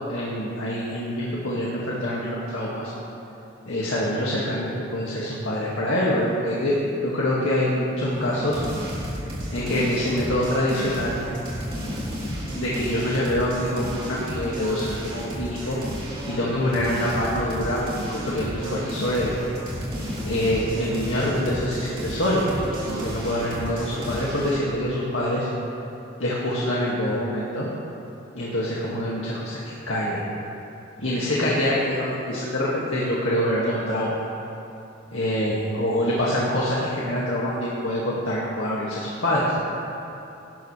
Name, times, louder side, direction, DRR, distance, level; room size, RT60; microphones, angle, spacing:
voice 1, 0.1-2.9 3.7-6.8 7.0-8.6 9.5-11.2 12.5-15.8 16.3-19.3 20.2-22.4 22.9-25.5 26.2-27.7 28.3-30.2 31.0-34.3 35.1-39.5, left 1 dB, 80° left, -6 dB, 2.0 m, -25 dB
sound 1, 8.1-24.6, equal, 30° right, 3.1 m, -32 dB
18.0 x 13.0 x 3.3 m, 3.0 s
head